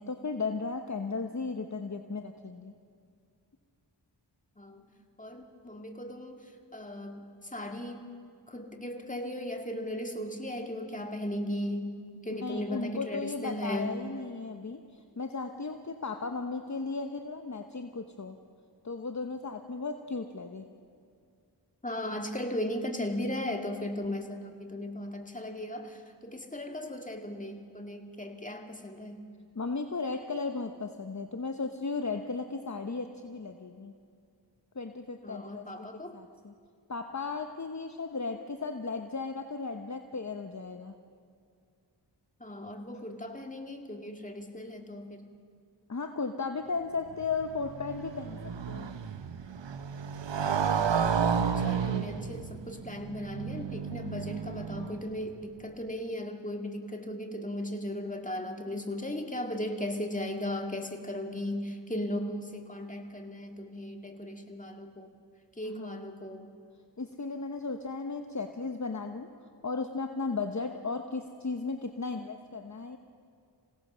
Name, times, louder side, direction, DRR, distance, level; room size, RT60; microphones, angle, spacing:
voice 1, 0.0-2.7 12.3-18.4 18.8-20.6 29.5-33.9 34.7-36.5 36.9-41.0 45.9-48.9 65.7-66.1 67.0-69.3 69.6-73.0, left 4 dB, 40° left, 6 dB, 1.1 m, -35 dB
voice 2, 5.2-8.1 8.5-12.0 12.2-14.0 21.8-29.2 35.2-36.1 42.4-45.3 51.4-65.1 65.6-66.6, left 1 dB, 20° left, 3 dB, 2.2 m, -37 dB
Motorcycle, 47.1-55.3, right 7 dB, 80° right, 0.9 m, -32 dB
27.0 x 17.0 x 6.3 m, 2.3 s
wide cardioid pair, 45°, 43 cm